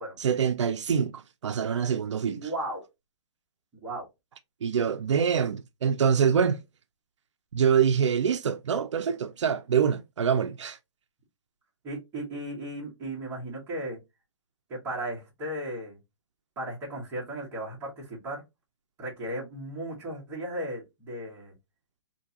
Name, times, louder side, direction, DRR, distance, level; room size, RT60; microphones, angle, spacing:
voice 1, 0.2-2.5 4.6-6.6 7.5-10.8, right 7 dB, 85° right, 0.5 m, -25 dB
voice 2, 2.3-2.8 3.7-4.0 11.8-14.0 14.7-16.0 16.6-18.4 19.0-21.5, right 1 dB, 15° right, 1.4 m, -35 dB
3.6 x 2.8 x 2.8 m
hypercardioid pair, 170°, 15 cm